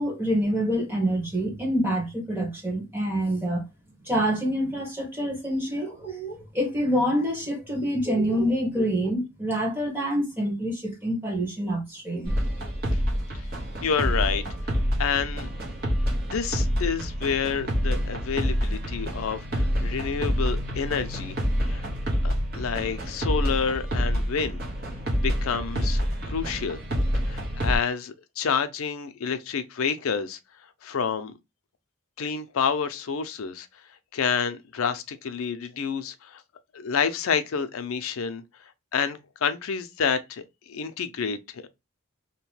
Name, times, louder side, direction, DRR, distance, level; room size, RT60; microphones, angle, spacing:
voice 1, 0.0-3.6 4.1-12.3, equal, 10° right, 1.1 m, -26 dB
sound 1, 12.2-27.8, equal, 45° right, 0.8 m, -27 dB
voice 2, 13.8-14.4 15.0-15.5 16.3-21.3 21.6-21.8 22.2-24.6 25.1-26.8 27.2-30.4 30.8-31.3 32.2-33.7 34.1-36.4 36.7-38.4 38.9-41.7, left 6 dB, 85° left, 0.5 m, -29 dB
2.8 x 2.2 x 3.1 m
head